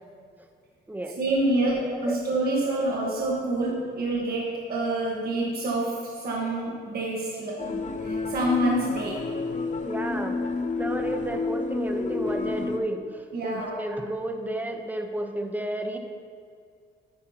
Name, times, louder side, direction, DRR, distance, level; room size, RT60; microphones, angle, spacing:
voice 1, 1.2-9.3 13.3-13.8, right 1 dB, 50° right, -3 dB, 1.4 m, -27 dB
voice 2, 1.8-2.2 9.9-10.4 10.8-16.0, right 1 dB, 10° right, 5 dB, 0.9 m, -32 dB
sound 1, 7.6-12.8, left 3 dB, 40° left, 0.7 m, -30 dB
10.0 x 9.5 x 2.9 m, 2.3 s
cardioid pair, 90°, 20 cm